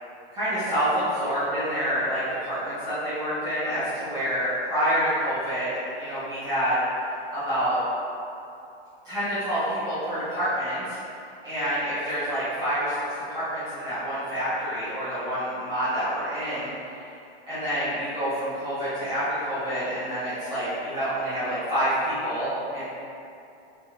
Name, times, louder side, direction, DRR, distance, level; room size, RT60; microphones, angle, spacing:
voice 1, 0.3-5.7 6.0-6.7 7.3-7.8 9.0-11.0 11.4-13.0 13.3-16.7 17.5-22.8, equal, 15° right, -18 dB, 1.1 m, -27 dB
4.4 x 3.3 x 3.0 m, 2.6 s
supercardioid pair, 180°, 32 cm